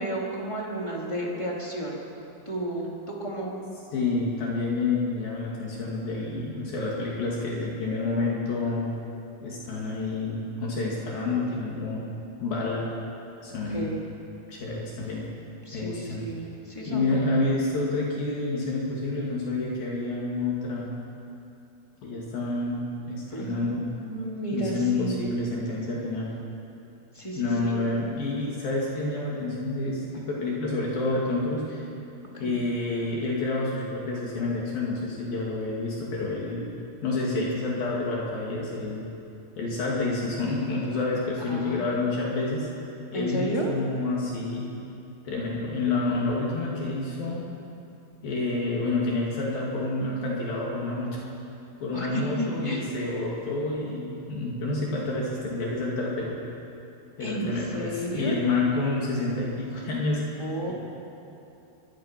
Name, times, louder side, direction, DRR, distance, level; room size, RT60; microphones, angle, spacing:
voice 1, 0.0-2.0 2.4-3.6 13.6-14.0 15.6-17.0 23.3-25.2 27.1-27.8 32.3-32.6 41.5-42.0 43.1-43.7 51.9-52.8 57.2-58.4 60.4-60.7, right 1 dB, 10° left, -3 dB, 3.3 m, -32 dB
voice 2, 3.9-8.9 9.4-12.1 12.4-12.8 13.4-14.0 14.5-15.3 15.7-16.3 16.8-20.9 22.0-23.8 24.5-26.3 27.4-31.9 32.4-36.7 37.0-39.1 39.6-42.7 43.1-44.7 45.3-47.5 48.2-51.2 51.8-56.4 57.2-60.7, left 2 dB, 65° left, -4 dB, 4.3 m, -28 dB
24.0 x 23.5 x 6.0 m, 2.8 s
omnidirectional pair, 4.6 m